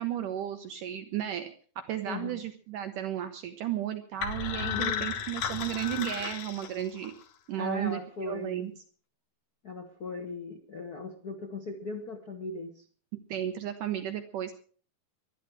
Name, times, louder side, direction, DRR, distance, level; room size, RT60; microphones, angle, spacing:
voice 1, 0.0-7.1 7.5-8.7 13.1-14.5, right 11 dB, 70° right, 8 dB, 2.2 m, -34 dB
voice 2, 2.0-2.4 4.6-5.1 7.5-8.7 9.6-12.8, left 3 dB, 90° left, 4 dB, 0.8 m, -38 dB
sound 1, 4.2-7.2, left 8 dB, 60° left, 2.2 m, -34 dB
19.0 x 12.5 x 4.8 m, 0.43 s
omnidirectional pair, 4.3 m